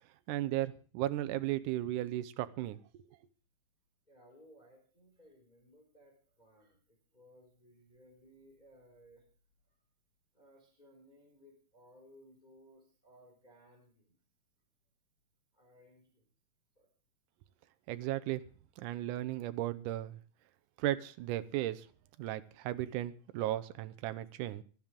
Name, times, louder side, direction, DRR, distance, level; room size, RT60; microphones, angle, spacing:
voice 1, 0.3-3.0 17.9-18.4 18.8-20.2 20.8-21.9 22.2-24.6, right 14 dB, 75° right, 12 dB, 1.9 m, -35 dB
voice 2, 4.1-9.2 9.7-9.8 10.3-14.2 15.5-16.3 16.8-16.9, equal, 10° left, 0 dB, 3.5 m, -61 dB
18.0 x 13.0 x 3.6 m, 0.39 s
omnidirectional pair, 4.5 m